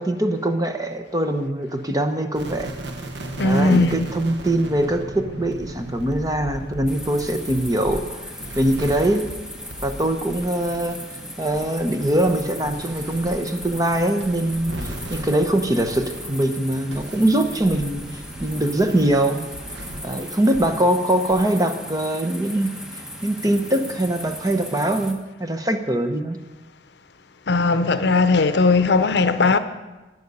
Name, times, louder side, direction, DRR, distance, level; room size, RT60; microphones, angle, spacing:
voice 1, 0.0-2.7 3.4-8.2 8.6-9.3 9.8-11.0 11.4-19.5 20.0-22.7 23.2-26.4, right 1 dB, 20° right, 0.9 m, -22 dB
sound 1, 2.3-16.5 16.9-20.8 21.3-21.5, right 1 dB, 85° right, 1.2 m, -37 dB
voice 2, 3.4-4.1 27.5-29.6, left 3 dB, 70° left, 0.7 m, -18 dB
sound 2, 6.9-25.1, equal, 5° right, 1.3 m, -37 dB
11.5 x 9.6 x 5.5 m
head